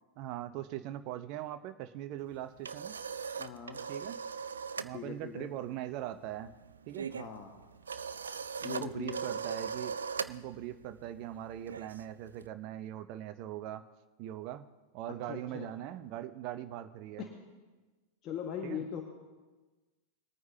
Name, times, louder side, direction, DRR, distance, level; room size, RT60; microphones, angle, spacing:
voice 1, 0.2-2.9 3.9-4.2 4.8-6.5 6.9-7.1 8.6-10.0 10.3-13.8 14.2-14.7 14.9-17.2 18.6-18.8, right 12 dB, 45° right, 11 dB, 0.7 m, -41 dB
sound 1, 2.3-5.0 5.2-5.5 5.8-12.5, right 6 dB, 70° right, 0.4 m, -40 dB
voice 2, 3.4-3.8 4.9-5.5 7.1-7.6 8.6-9.2 15.3-15.7 17.2-17.3 18.2-19.0, left 8 dB, 35° left, 2 dB, 1.5 m, -40 dB
22.0 x 9.4 x 2.8 m, 1.2 s
figure-of-eight pair, 90°, 0 cm